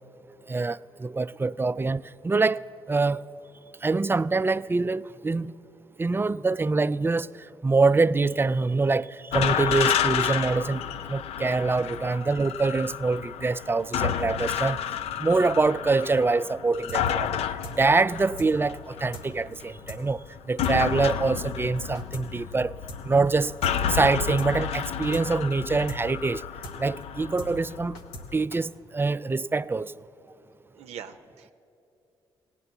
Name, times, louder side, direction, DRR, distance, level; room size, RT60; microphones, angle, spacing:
voice 1, 0.5-2.6 2.9-3.2 3.8-5.5 6.0-7.3 7.6-10.8 11.1-14.8 15.2-17.4 17.8-20.2 20.5-22.7 23.0-23.5 23.9-26.4 26.8-27.9 28.3-29.9, right 3 dB, 20° right, 0.3 m, -25 dB
sound 1, 9.3-28.4, left 9 dB, 65° left, 0.4 m, -31 dB
sound 2, 16.9-17.0 17.3-17.4 17.6-17.8 18.0-18.1 18.4-18.5 18.8-18.9 19.1-19.3 19.5-19.6 19.9-20.0 20.3-20.4 20.6-20.8 21.0-21.1 21.4-21.5 21.8-22.3 22.5-22.6 22.9-23.0 23.3-23.4 23.6-23.8 24.0-24.1 24.4-24.5 24.8-24.9 25.1-25.3 25.5-25.6 25.9-26.0 26.3-26.4 26.6-26.8 27.0-27.1 27.4-27.5 27.8-28.3 28.5-28.6, equal, 85° left, 1.0 m, -41 dB
voice 2, 30.8-31.5, right 8 dB, 75° right, 0.6 m, -42 dB
17.0 x 9.0 x 7.0 m
hypercardioid pair, 50°, 11 cm